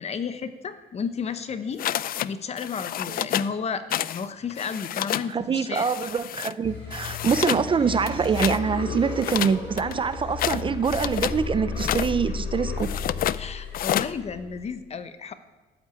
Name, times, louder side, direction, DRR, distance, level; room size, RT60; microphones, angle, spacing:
voice 1, 0.0-1.8 2.2-5.8 13.3-15.3, left 6 dB, 35° left, 11 dB, 1.0 m, -32 dB
sound 1, 1.8-2.3 2.6-3.5 3.9-4.2 4.5-5.3 5.7-6.5 6.9-7.7 8.0-8.6 9.2-11.4 11.7-12.1 12.8-13.4 13.7-14.1, left 12 dB, 50° left, 0.4 m, -29 dB
voice 2, 5.3-12.9, right 6 dB, 25° right, 12 dB, 0.5 m, -25 dB
sound 2, 6.6-14.6, left 4 dB, 80° left, 6.0 m, -33 dB
13.0 x 8.7 x 9.1 m, 1.2 s
cardioid pair, 155°, 19 cm